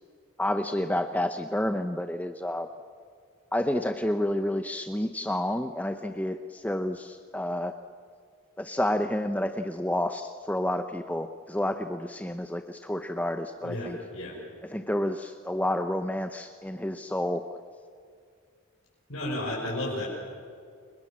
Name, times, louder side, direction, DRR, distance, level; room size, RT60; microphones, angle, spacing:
voice 1, 0.4-2.7 3.5-7.7 8.6-14.0 14.7-17.5, left 1 dB, 5° left, 7 dB, 0.7 m, -29 dB
voice 2, 13.6-14.4 19.1-20.0, left 1 dB, 80° left, -6 dB, 6.7 m, -32 dB
29.5 x 23.0 x 7.5 m, 2.2 s
head